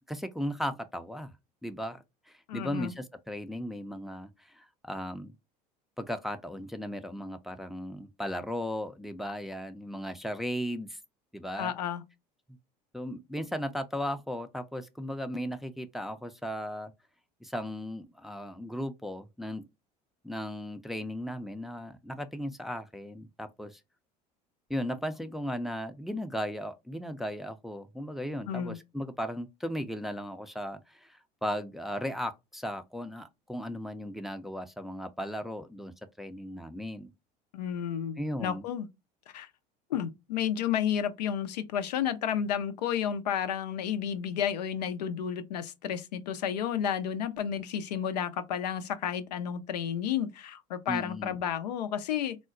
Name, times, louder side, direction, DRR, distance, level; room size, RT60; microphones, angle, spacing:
voice 1, 0.1-1.4 1.6-5.3 6.0-11.0 11.3-11.7 12.9-16.9 17.4-19.7 20.2-23.8 24.7-37.1 38.2-38.6 50.9-51.4, equal, ahead, 0.4 m, -36 dB
voice 2, 2.5-2.9 11.6-12.0 28.5-28.8 37.5-38.9 39.3-39.5 39.9-52.4, left 9 dB, 85° left, 0.4 m, -31 dB
3.7 x 2.1 x 2.4 m
hypercardioid pair, 75°, 21 cm